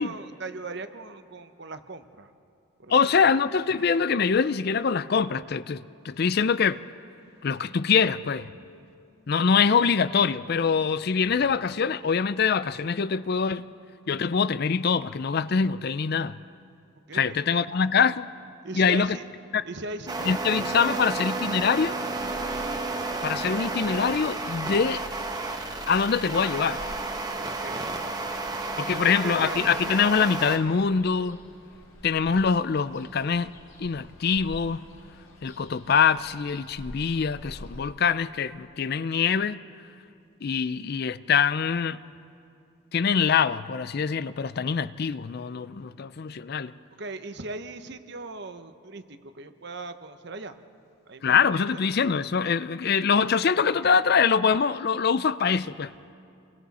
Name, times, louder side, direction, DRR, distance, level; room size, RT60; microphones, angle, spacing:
voice 1, 0.0-2.3 2.8-3.3 8.5-8.6 9.5-9.7 11.2-11.5 17.1-17.2 17.5-17.8 18.6-19.2 19.6-21.1 27.3-29.7 47.0-50.6 51.1-51.9, right 2 dB, 55° right, 0.9 m, -40 dB
voice 2, 2.9-6.8 7.4-8.5 9.3-13.6 14.1-16.4 17.1-18.3 18.7-19.2 19.5-19.6 20.3-22.0 23.2-25.0 25.9-26.8 28.8-31.4 32.0-33.5 33.8-34.8 35.4-39.6 40.4-42.0 42.9-46.7 51.2-55.9, left 6 dB, 50° left, 0.4 m, -24 dB
sound 1, 20.1-30.6, right 3 dB, 20° right, 1.2 m, -32 dB
Ocean, 22.2-37.8, equal, 75° left, 5.4 m, -48 dB
29.5 x 22.5 x 4.2 m
head